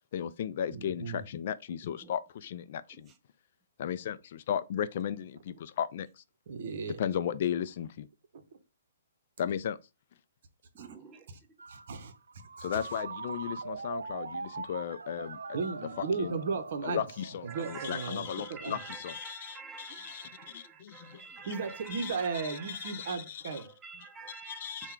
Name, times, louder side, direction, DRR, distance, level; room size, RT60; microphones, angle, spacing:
voice 1, 0.1-3.1 3.8-6.2 7.0-8.1 9.4-9.8 12.6-15.6 16.2-16.4 16.8-20.3 20.5-21.5 21.9-22.2 22.4-23.6 24.5-24.9, left 9 dB, 50° left, 0.3 m, -35 dB
voice 2, 0.7-1.2 6.5-7.0 10.8-10.9 11.7-12.1 12.6-12.8 15.5-17.1 17.4-18.8 21.5-23.7, right 5 dB, 60° right, 0.8 m, -35 dB
voice 3, 10.7-11.4 17.5-23.2 23.5-24.9, right 5 dB, 20° right, 0.6 m, -48 dB
Ringtone, 11.6-19.1, right 4 dB, 85° right, 0.4 m, -43 dB
3.6 x 2.2 x 4.4 m
hypercardioid pair, 135°, 0 cm